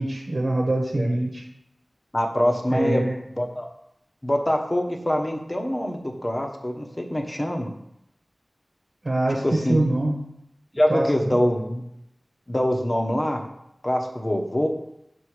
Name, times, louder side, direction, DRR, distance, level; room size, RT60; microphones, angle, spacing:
voice 1, 0.0-1.4 2.7-3.1 9.0-10.2 10.9-11.4, right 1 dB, 65° right, -1 dB, 1.1 m, -24 dB
voice 2, 2.1-3.1 3.3-3.7 4.2-7.7 9.4-9.8 10.8-11.8 12.5-13.4 13.8-14.7, equal, 30° left, 2 dB, 1.2 m, -24 dB
6.3 x 4.6 x 5.0 m, 0.79 s
wide cardioid pair, 45°, 0 cm